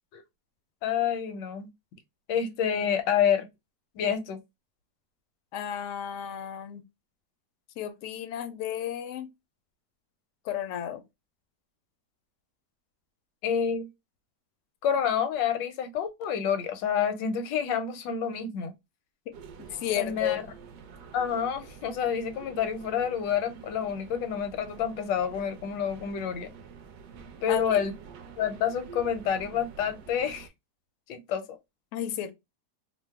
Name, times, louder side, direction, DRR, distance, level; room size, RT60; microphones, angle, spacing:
voice 1, 0.8-1.7 2.3-3.5 3.9-4.4 13.4-13.9 14.8-18.7 20.0-20.4 21.1-26.5 27.4-27.9 28.4-30.5 31.1-31.6, left 8 dB, 85° left, 1.3 m, -28 dB
voice 2, 5.5-6.8 7.8-9.3 10.4-11.0 19.7-20.4 27.5-27.8 31.9-32.3, left 10 dB, 70° left, 0.7 m, -33 dB
sound 1, 19.3-30.5, right 6 dB, 70° right, 0.9 m, -48 dB
2.9 x 2.0 x 3.3 m
omnidirectional pair, 1.9 m